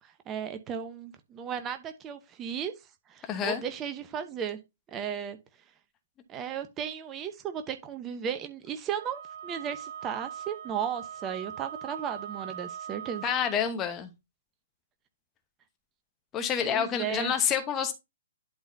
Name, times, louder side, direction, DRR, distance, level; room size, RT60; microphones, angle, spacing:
voice 1, 0.0-2.7 3.1-4.6 4.9-5.4 6.3-13.2 16.6-17.3, right 8 dB, 20° right, 0.8 m, -35 dB
voice 2, 3.3-3.6 13.2-14.1 16.3-17.9, left 8 dB, 20° left, 1.0 m, -28 dB
Wind instrument woodwind instrument, 8.9-13.6, right 8 dB, 55° right, 1.4 m, -41 dB
11.0 x 3.9 x 2.7 m
figure-of-eight pair, 120°, 0 cm